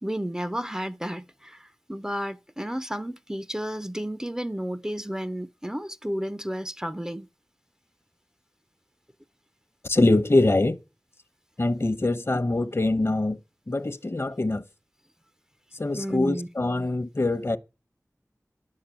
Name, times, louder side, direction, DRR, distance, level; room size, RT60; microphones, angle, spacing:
voice 1, 0.0-7.3 15.9-16.5, equal, 10° right, 0.6 m, -32 dB
voice 2, 9.8-10.8 11.6-13.4 13.7-14.6 15.7-17.6, left 2 dB, 45° left, 0.9 m, -23 dB
11.0 x 7.5 x 8.8 m
wide cardioid pair, 50°, 6 cm